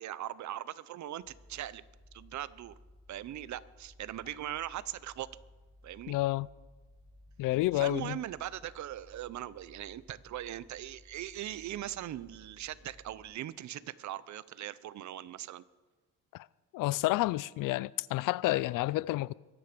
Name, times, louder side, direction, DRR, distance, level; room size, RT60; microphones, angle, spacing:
voice 1, 0.0-1.8 2.1-2.8 3.1-5.3 5.8-6.2 7.7-15.6, right 12 dB, 65° right, 0.7 m, -40 dB
sound 1, 1.2-13.3, left 1 dB, 15° right, 6.4 m, -58 dB
voice 2, 6.1-6.5 7.4-8.2 16.3-16.5 16.7-19.3, left 18 dB, 85° left, 0.5 m, -30 dB
23.0 x 9.8 x 5.2 m
cardioid pair, 115°, 32 cm